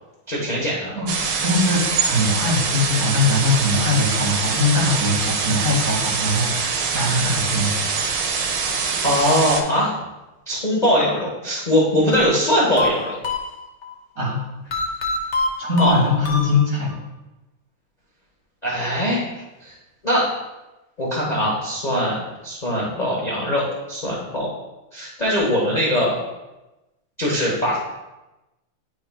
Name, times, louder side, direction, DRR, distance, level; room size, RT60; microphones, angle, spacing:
voice 1, 0.3-0.9 9.0-9.9 10.5-13.2 15.8-15.9 18.6-19.3 19.6-19.7 20.0-20.3 21.0-24.5 24.9-26.1 27.2-27.8, equal, 30° left, -5 dB, 0.8 m, -21 dB
sound 1, 1.1-9.6, right 5 dB, 70° right, 1.3 m, -24 dB
voice 2, 1.4-7.7 14.2-14.4 14.7-14.8 15.6-16.9, left 2 dB, 40° right, -6 dB, 2.2 m, -21 dB
sound 2, 12.1-13.9 14.7-17.0, left 3 dB, 65° left, 0.7 m, -26 dB
10.0 x 4.7 x 2.3 m, 1.0 s
omnidirectional pair, 2.3 m